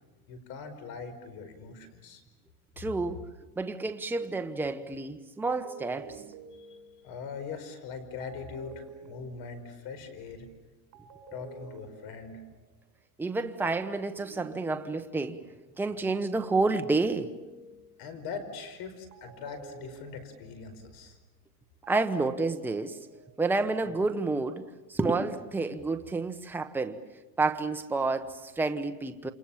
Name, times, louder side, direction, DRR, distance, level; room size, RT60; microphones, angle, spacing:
voice 1, 0.3-2.2 6.6-6.8 7.0-10.5 11.3-12.4 18.0-21.2, left 5 dB, 55° left, 10 dB, 5.4 m, -41 dB
voice 2, 2.8-3.2 3.6-6.2 13.2-15.4 15.8-17.6 21.9-23.0 23.4-24.6 24.9-27.0 27.4-29.3, right 3 dB, 5° right, 6 dB, 1.1 m, -29 dB
sound 1, 5.5-7.2 8.2-9.9 10.9-12.6 13.7-15.3 16.4-18.1 19.1-20.8 21.8-23.2, right 5 dB, 60° right, 7.7 m, -49 dB
29.0 x 28.5 x 7.4 m, 1.2 s
supercardioid pair, 135°, 45 cm